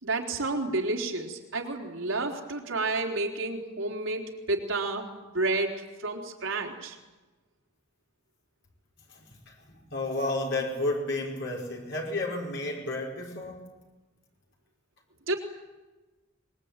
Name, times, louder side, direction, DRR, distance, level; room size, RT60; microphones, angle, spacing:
voice 1, 0.0-7.0 15.3-15.4, right 2 dB, 85° right, 1 dB, 4.0 m, -30 dB
voice 2, 9.1-13.6, left 2 dB, 65° left, -1 dB, 5.4 m, -32 dB
24.5 x 21.5 x 9.0 m, 1.2 s
head